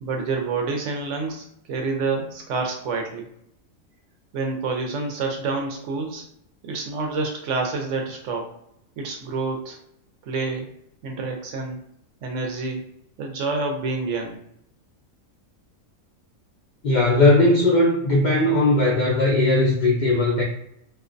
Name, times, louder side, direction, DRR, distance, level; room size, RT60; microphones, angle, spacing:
voice 1, 0.0-3.3 4.3-6.2 6.6-8.5 9.0-9.8 10.2-10.7 11.0-11.8 12.2-12.9 13.2-14.4, right 3 dB, 70° right, 2 dB, 0.8 m, -28 dB
voice 2, 16.8-20.4, left 2 dB, 85° left, -4 dB, 0.4 m, -18 dB
2.5 x 2.1 x 2.5 m, 0.74 s
omnidirectional pair, 1.5 m